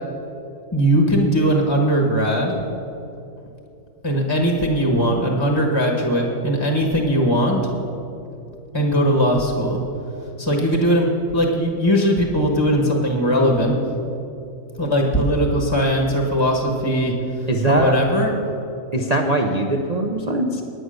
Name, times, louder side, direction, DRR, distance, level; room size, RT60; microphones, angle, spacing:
voice 1, 0.7-2.6 4.0-7.6 8.7-9.8 10.4-13.7 14.8-17.1 17.7-18.3, equal, 20° left, 1 dB, 0.9 m, -19 dB
voice 2, 17.5-17.9 18.9-20.6, right 2 dB, 55° right, 2 dB, 0.4 m, -21 dB
9.5 x 9.0 x 6.4 m, 2.7 s
omnidirectional pair, 1.6 m